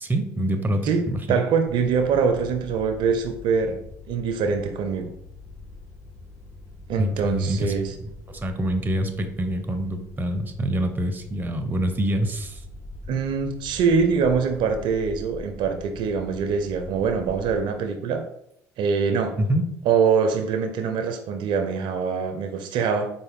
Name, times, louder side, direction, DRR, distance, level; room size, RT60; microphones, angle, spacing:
voice 1, 0.0-1.4 7.0-7.7 8.3-12.6 19.4-19.6, equal, 20° right, 7 dB, 0.6 m, -25 dB
voice 2, 0.8-3.8 4.1-5.1 6.9-7.9 13.1-18.2 18.8-19.3 19.9-23.1, right 5 dB, 65° right, 6 dB, 0.5 m, -24 dB
sound 1, 1.7-17.6, left 2 dB, 40° left, 1.4 m, -43 dB
4.3 x 2.1 x 3.5 m, 0.72 s
hypercardioid pair, 65°, 9 cm